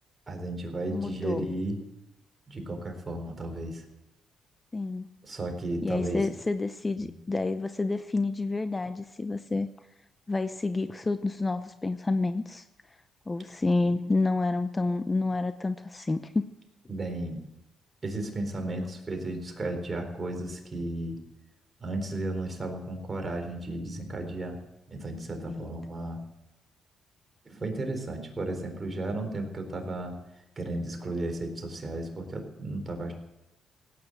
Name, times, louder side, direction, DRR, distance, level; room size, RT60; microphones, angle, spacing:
voice 1, 0.3-1.8 2.5-3.8 5.2-6.3 7.0-7.1 16.9-17.4 18.0-21.2 21.8-24.6 24.9-26.2 27.4-30.2 30.6-33.1, right 2 dB, 30° right, 4 dB, 4.1 m, -34 dB
voice 2, 0.9-1.5 4.7-5.1 5.8-9.7 10.3-12.6 13.3-16.4 25.5-25.7, left 3 dB, 20° left, 11 dB, 0.7 m, -29 dB
17.0 x 9.6 x 7.9 m, 0.91 s
cardioid pair, 85°, 0 cm